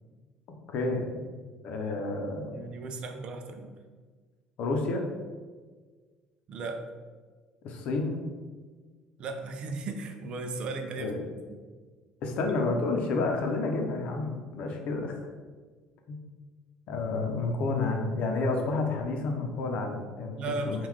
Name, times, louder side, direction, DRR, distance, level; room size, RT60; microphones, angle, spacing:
voice 1, 0.7-1.2 1.6-2.6 4.6-5.1 7.6-8.3 11.0-11.2 12.2-15.2 16.1-16.2 16.9-20.4 20.6-20.9, left 3 dB, 65° left, 3 dB, 0.7 m, -30 dB
voice 2, 2.5-3.7 6.5-6.8 9.2-11.1 11.5-11.6 20.3-20.9, right 3 dB, 50° right, 5 dB, 0.5 m, -36 dB
3.8 x 2.4 x 4.6 m, 1.5 s
cardioid pair, 125°, 2 cm